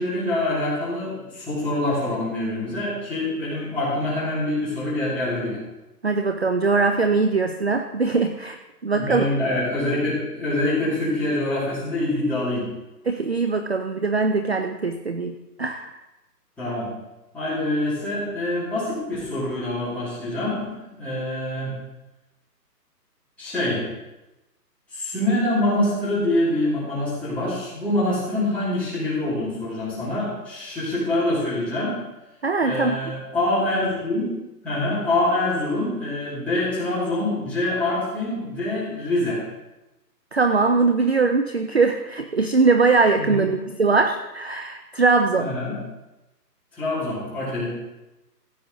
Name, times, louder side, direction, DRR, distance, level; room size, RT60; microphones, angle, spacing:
voice 1, 0.0-5.6 8.9-12.7 16.6-16.9 17.3-21.7 23.4-23.8 24.9-31.9 32.6-34.3 34.6-39.4 43.2-43.4 45.4-45.8 46.7-47.7, left 1 dB, 5° left, -12 dB, 2.7 m, -25 dB
voice 2, 6.0-8.6 8.8-9.3 13.1-15.9 32.4-33.1 40.3-45.6, right 4 dB, 40° right, 7 dB, 0.5 m, -21 dB
15.0 x 8.5 x 3.9 m, 1.0 s
hypercardioid pair, 170°, 49 cm